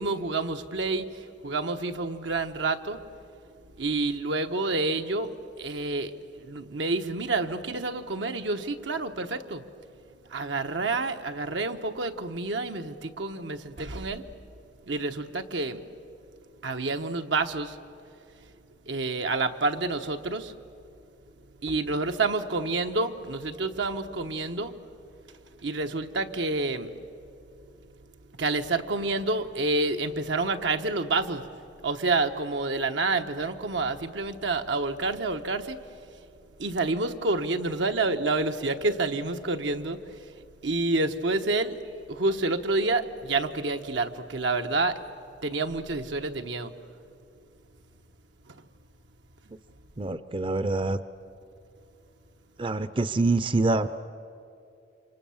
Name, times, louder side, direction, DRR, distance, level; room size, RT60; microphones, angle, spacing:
voice 1, 0.0-3.1 3.8-9.6 10.3-14.3 14.9-16.0 16.6-17.8 18.4-18.5 18.8-20.6 21.6-24.7 25.3-27.0 28.4-31.5 31.8-36.2 36.6-40.3 40.6-45.1 45.4-46.7 48.5-48.7, right 3 dB, 85° right, 6 dB, 1.1 m, -29 dB
voice 2, 50.0-51.0 52.6-53.9, right 2 dB, 30° right, 14 dB, 0.5 m, -25 dB
28.5 x 25.0 x 7.2 m, 2.6 s
head